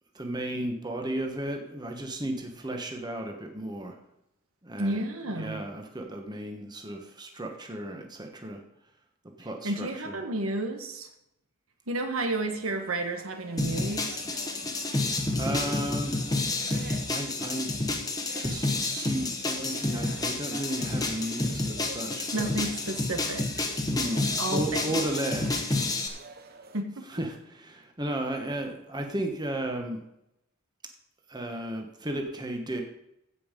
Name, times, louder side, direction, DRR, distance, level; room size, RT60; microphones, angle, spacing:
voice 1, 0.1-4.0 4.6-8.6 9.4-10.2 14.7-14.9 15.4-16.2 17.1-17.7 18.4-22.5 23.9-25.6 27.1-30.0 31.3-32.8, right 1 dB, 20° right, 3 dB, 1.2 m, -34 dB
voice 2, 4.8-5.6 9.6-11.1 11.9-14.2 22.3-23.4 24.4-25.0 26.7-27.0, right 2 dB, 75° right, 6 dB, 1.4 m, -31 dB
sound 1, 12.3-26.8, right 3 dB, 45° right, 0.9 m, -48 dB
sound 2, 13.6-26.1, left 2 dB, 15° left, 1.2 m, -30 dB
15.5 x 5.4 x 5.3 m, 0.82 s
head